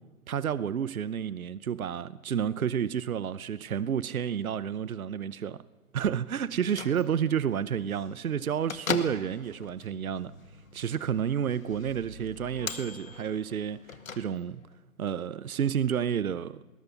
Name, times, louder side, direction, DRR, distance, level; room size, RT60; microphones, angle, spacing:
voice 1, 0.3-5.6 5.9-10.4 10.7-14.6 15.0-16.6, right 8 dB, 70° right, 0.8 m, -30 dB
Bell / Microwave oven, 6.5-14.8, left 6 dB, 65° left, 1.8 m, -41 dB
20.0 x 20.0 x 7.0 m
figure-of-eight pair, 135°, 44 cm